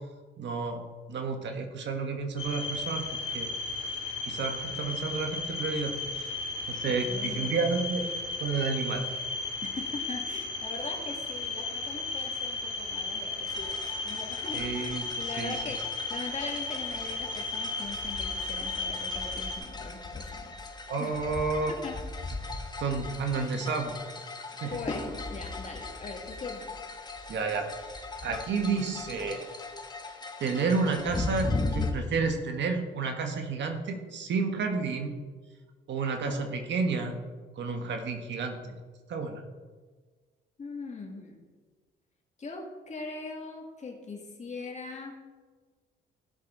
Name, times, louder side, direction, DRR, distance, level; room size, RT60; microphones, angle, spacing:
voice 1, 0.4-3.0 3.3-3.5 3.8-4.0 4.3-6.3 6.7-8.1 8.4-9.1 14.5-15.0 15.4-15.5 20.9-21.7 22.8-23.9 24.5-24.8 27.3-27.7 28.2-29.4 30.4-35.2 35.9-37.2 37.6-38.8 39.1-39.4, right 4 dB, 65° right, 4 dB, 1.5 m, -31 dB
sound 1, 2.4-19.6, left 3 dB, 85° left, 2.5 m, -35 dB
voice 2, 6.9-7.6 9.6-13.8 14.0-20.5 21.0-21.1 21.7-22.0 24.7-26.7 40.6-41.5 42.4-45.1, left 3 dB, 35° left, 0 dB, 2.5 m, -41 dB
sound 2, 13.5-31.9, left 3 dB, 20° left, 1.3 m, -38 dB
16.0 x 6.3 x 4.0 m, 1.4 s
cardioid pair, 90°, 20 cm